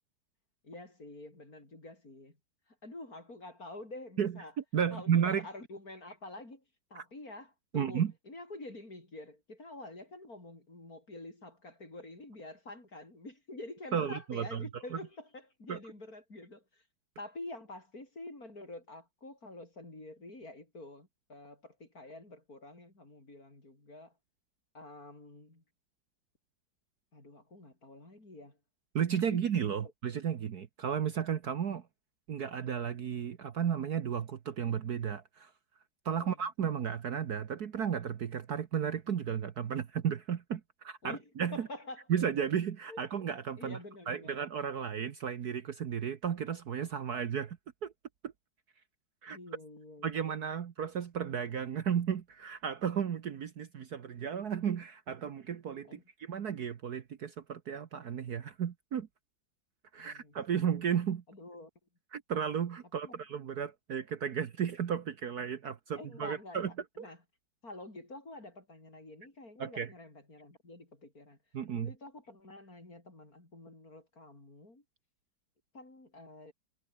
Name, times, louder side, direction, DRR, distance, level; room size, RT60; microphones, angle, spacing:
voice 1, 0.6-2.4 2.7-4.5 4.9-6.6 6.9-16.8 17.2-24.2 24.7-25.6 27.1-28.6 29.1-29.4 36.2-36.5 41.0-42.1 42.9-43.0 43.6-44.4 49.3-50.3 55.9-56.0 60.0-60.7 61.3-61.7 63.0-63.2 66.0-67.2 67.6-71.4 71.7-74.8 75.7-76.5, left 2 dB, 45° left, 7.1 m, -48 dB
voice 2, 4.7-5.4 6.9-7.0 7.7-8.1 13.9-14.6 15.7-15.8 28.9-31.8 32.3-35.5 36.0-41.7 42.1-43.8 44.1-47.9 49.2-49.4 50.0-59.1 59.9-61.2 62.1-66.7 67.0-67.1 69.6-69.9 71.5-71.9, right 8 dB, 55° right, 1.5 m, -33 dB
omnidirectional pair, 2.2 m